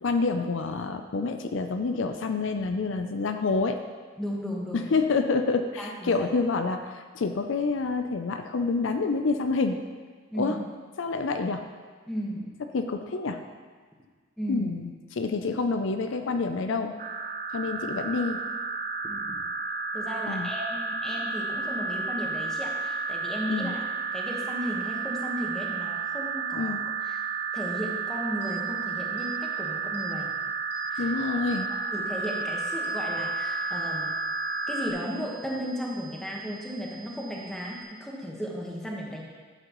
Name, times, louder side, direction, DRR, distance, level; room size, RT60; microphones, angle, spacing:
voice 1, 0.0-3.8 4.7-9.8 10.4-10.6 11.0-11.7 12.7-13.4 14.5-16.9 17.5-18.4 20.3-20.5 23.5-23.7 26.6-26.8 31.0-31.7, left 4 dB, 70° left, 7 dB, 0.5 m, -27 dB
voice 2, 4.2-4.9 5.8-6.3 10.3-10.6 12.1-12.5 14.4-14.7 19.0-19.4 19.9-23.8 24.1-27.2 27.5-30.3 30.9-31.1 31.7-34.1 34.7-39.2, equal, 5° left, -3 dB, 1.3 m, -35 dB
sound 1, 17.0-34.9, right 4 dB, 45° right, 0.8 m, -32 dB
sound 2, 28.4-28.6 29.2-29.3 29.9-30.1 30.7-30.9 31.5-31.6 32.2-32.4 32.8-37.8, right 3 dB, 50° left, 2.5 m, -49 dB
11.5 x 7.8 x 3.1 m, 1.5 s
head